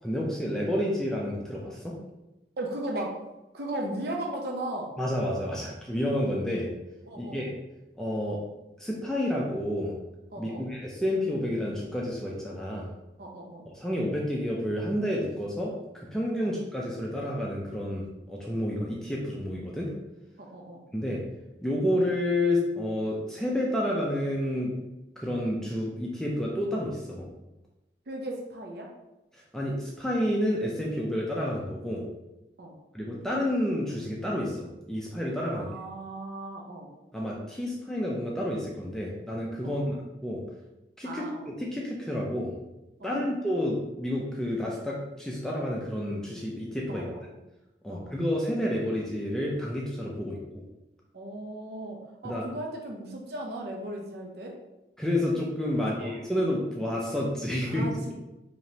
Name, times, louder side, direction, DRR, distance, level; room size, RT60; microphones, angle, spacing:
voice 1, 0.0-1.9 5.0-6.7 7.2-7.5 8.0-8.4 8.8-10.0 10.4-12.9 13.8-19.9 20.9-21.2 21.6-24.7 25.2-27.3 29.3-32.0 32.9-35.7 37.1-40.0 40.2-40.4 41.0-42.5 43.0-47.1 47.8-50.6 52.2-52.5 55.0-57.8, left 1 dB, 5° left, -3 dB, 0.5 m, -30 dB
voice 2, 2.6-3.1 3.5-4.9 7.0-7.5 10.3-10.7 13.2-13.7 16.4-16.5 20.4-20.8 28.1-28.9 32.6-32.7 35.5-36.9 39.6-40.0 41.0-41.5 43.0-43.3 46.9-47.2 47.9-48.2 51.1-54.6 55.8-56.2 57.6-58.1, right 1 dB, 60° right, 0 dB, 0.7 m, -37 dB
4.8 x 2.9 x 2.8 m, 0.99 s
head